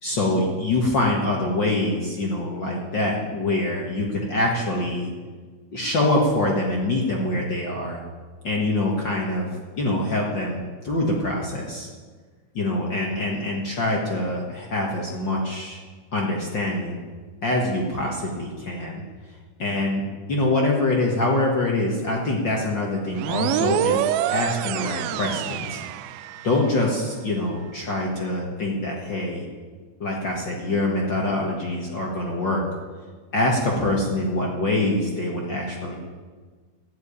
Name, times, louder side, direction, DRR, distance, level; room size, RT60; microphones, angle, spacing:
voice 1, 0.0-5.1 5.7-8.0 8.4-9.5 9.8-11.9 12.5-15.8 16.1-17.0 17.4-19.0 19.6-24.0 24.3-25.8 26.4-29.5 30.0-32.6 33.3-36.0, left 2 dB, 50° left, -1 dB, 1.4 m, -24 dB
sound 1, 23.2-26.7, right 13 dB, 90° right, 2.4 m, -26 dB
13.5 x 7.6 x 9.9 m, 1.5 s
omnidirectional pair, 4.2 m